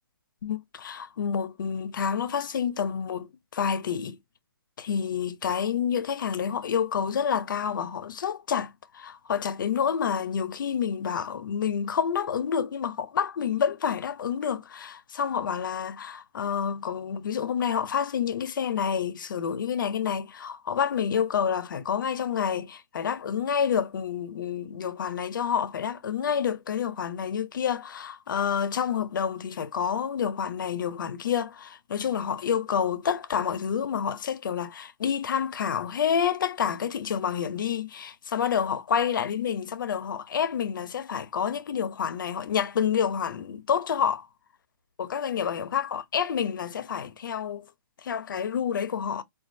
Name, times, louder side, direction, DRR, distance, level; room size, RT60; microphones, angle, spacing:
voice 1, 0.4-4.2 4.8-44.3 45.0-47.7 48.0-49.2, left 7 dB, 60° left, 0.5 m, -28 dB
4.0 x 2.3 x 2.6 m
hypercardioid pair, 160°, 12 cm